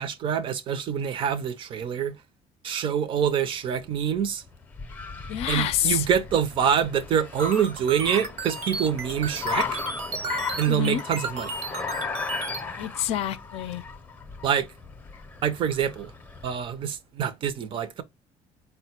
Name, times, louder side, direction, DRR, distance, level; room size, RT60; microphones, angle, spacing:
voice 1, 0.0-2.1 2.6-4.4 5.5-9.8 10.6-11.6 14.4-14.7 15.4-16.1 16.4-18.0, right 8 dB, 45° right, 0.5 m, -26 dB
Car, 3.8-16.7, left 5 dB, 15° left, 0.6 m, -36 dB
voice 2, 5.3-6.1 10.7-11.0 12.8-13.8, left 11 dB, 60° left, 0.5 m, -27 dB
sound 1, 7.4-12.6, right 4 dB, 75° right, 1.0 m, -34 dB
4.2 x 2.2 x 4.2 m
cardioid pair, 140°, 12 cm